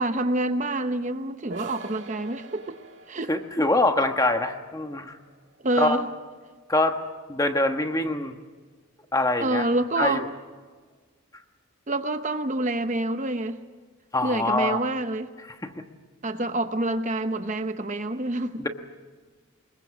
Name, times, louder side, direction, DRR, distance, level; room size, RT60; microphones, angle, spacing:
voice 1, 0.0-2.8 3.1-3.3 5.6-6.1 9.4-10.2 11.9-13.6 14.2-15.3 16.2-18.6, right 2 dB, 35° right, 0.9 m, -27 dB
sound 1, 1.5-7.0, right 2 dB, 55° right, 2.2 m, -47 dB
voice 2, 3.3-5.2 5.8-6.0 6.7-7.0 7.3-8.4 9.1-9.7 10.0-10.3 14.1-14.8 15.6-15.7 18.6-18.7, left 2 dB, 15° left, 1.2 m, -24 dB
25.0 x 22.0 x 7.2 m
head